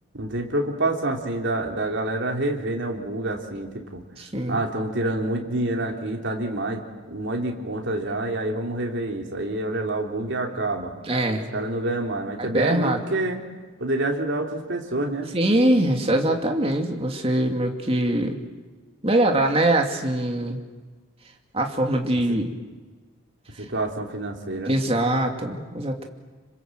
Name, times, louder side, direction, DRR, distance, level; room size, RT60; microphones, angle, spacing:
voice 1, 0.1-4.0 4.5-6.8 7.1-10.9 11.5-13.4 13.8-15.3 22.3-22.4 23.6-24.7, right 2 dB, 60° right, 1 dB, 3.4 m, -27 dB
voice 2, 4.2-4.6 11.1-11.4 12.4-13.0 15.3-18.4 19.0-20.6 21.5-22.5 24.7-26.1, right 1 dB, 30° right, 3 dB, 2.6 m, -22 dB
27.5 x 25.0 x 7.7 m, 1.3 s
head